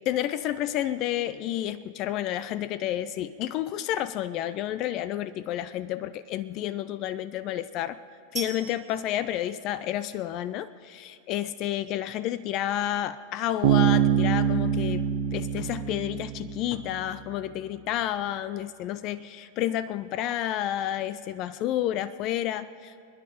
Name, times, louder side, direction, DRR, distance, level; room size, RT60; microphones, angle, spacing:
voice 1, 0.1-8.0 8.3-22.9, left 12 dB, 40° left, 15 dB, 0.4 m, -30 dB
sound 1, 8.4-10.3, right 4 dB, 15° right, 1.9 m, -41 dB
Bass guitar, 13.6-17.1, right 9 dB, 45° right, 1.0 m, -25 dB
25.0 x 10.5 x 5.1 m, 2.3 s
figure-of-eight pair, 90°, 0 cm